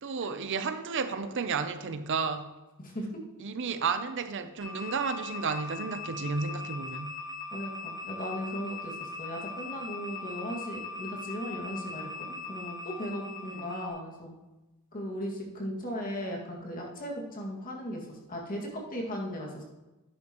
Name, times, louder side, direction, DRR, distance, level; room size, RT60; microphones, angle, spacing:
voice 1, 0.0-2.5 3.4-7.1 13.5-13.7, right 5 dB, 55° right, 10 dB, 0.6 m, -32 dB
sound 1, 4.6-13.9, left 3 dB, 15° left, 2.7 m, -40 dB
voice 2, 7.5-14.3 14.9-18.0 18.3-19.6, equal, 40° left, -2 dB, 2.1 m, -37 dB
11.0 x 9.6 x 3.0 m, 1.1 s
head